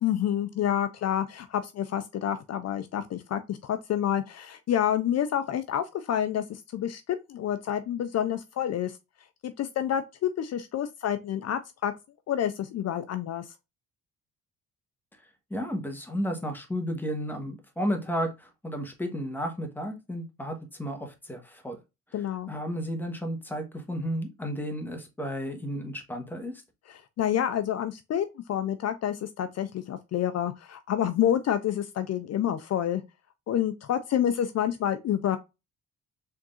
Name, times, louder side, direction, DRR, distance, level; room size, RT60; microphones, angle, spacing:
voice 1, 0.0-8.9 9.4-11.9 12.3-13.4 22.1-22.5 26.9-33.0 33.5-35.4, left 10 dB, 55° left, 0.6 m, -28 dB
voice 2, 15.5-21.8 22.5-26.5, equal, 5° left, 1.4 m, -33 dB
4.5 x 3.6 x 2.5 m
cardioid pair, 90°, 30 cm